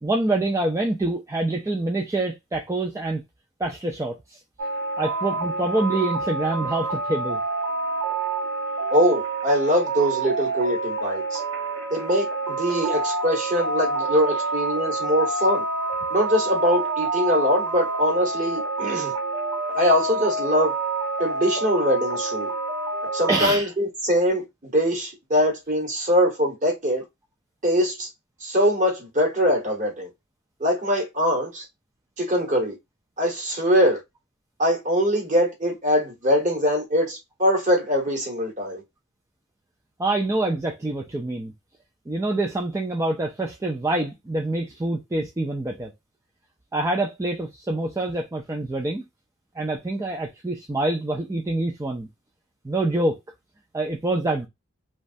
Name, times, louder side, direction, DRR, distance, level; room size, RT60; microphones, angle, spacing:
voice 1, 0.0-3.2 3.6-4.4 5.0-7.4 23.3-23.7 40.0-41.5 42.1-45.9 46.7-49.0 49.6-52.1 52.6-53.2 53.7-54.5, right 2 dB, 15° right, 0.3 m, -26 dB
sound 1, 4.6-23.5, right 3 dB, 75° right, 0.7 m, -27 dB
voice 2, 8.9-11.4 11.9-15.6 16.1-19.1 19.7-20.7 21.2-22.5 23.1-27.0 27.6-28.1 28.4-30.1 30.6-31.6 32.2-32.7 33.2-34.0 34.6-38.8, equal, 40° right, 1.2 m, -22 dB
3.1 x 2.3 x 2.5 m
head